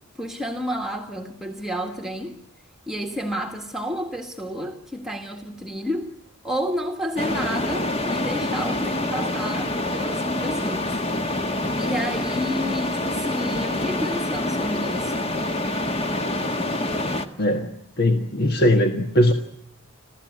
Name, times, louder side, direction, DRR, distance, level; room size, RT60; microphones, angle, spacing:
voice 1, 0.1-2.4 2.9-6.1 6.4-11.0 11.7-15.3, equal, ahead, 2 dB, 1.6 m, -30 dB
sound 1, 7.2-17.3, left 1 dB, 25° left, 1.6 m, -26 dB
voice 2, 17.4-19.3, left 1 dB, 45° left, 6 dB, 1.6 m, -20 dB
27.0 x 15.5 x 9.5 m, 0.72 s
head